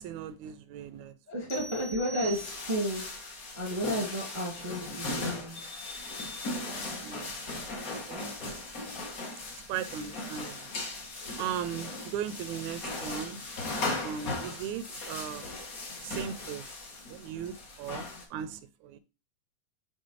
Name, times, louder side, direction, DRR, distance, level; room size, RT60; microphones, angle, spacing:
voice 1, 0.0-1.1 7.0-7.4 7.9-8.3 9.7-10.7 11.4-13.4 14.0-15.5 16.0-16.6 17.1-19.0, right 8 dB, 80° right, 1.8 m, -37 dB
voice 2, 1.3-3.1 3.5-5.6, equal, 20° right, 0.9 m, -32 dB
sound 1, 1.5-3.0, right 3 dB, 80° left, 3.2 m, -43 dB
sound 2, 2.3-18.2, left 2 dB, 50° left, 1.1 m, -38 dB
6.6 x 3.9 x 3.9 m
omnidirectional pair, 3.4 m